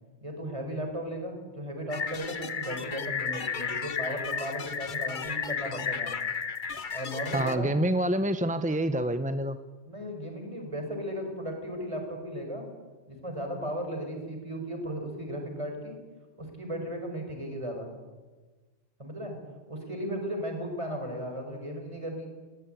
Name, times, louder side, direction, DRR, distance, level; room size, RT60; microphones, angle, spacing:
voice 1, 0.2-6.2 6.7-7.7 9.8-12.7 13.1-16.0 16.4-17.9 19.0-19.4 19.7-22.3, equal, 25° right, 3 dB, 5.0 m, -36 dB
sound 1, 1.9-7.6, left 6 dB, 45° left, 1.1 m, -33 dB
voice 2, 7.3-9.6, right 1 dB, 10° right, 10 dB, 0.5 m, -27 dB
20.0 x 18.0 x 9.1 m, 1.3 s
omnidirectional pair, 1.3 m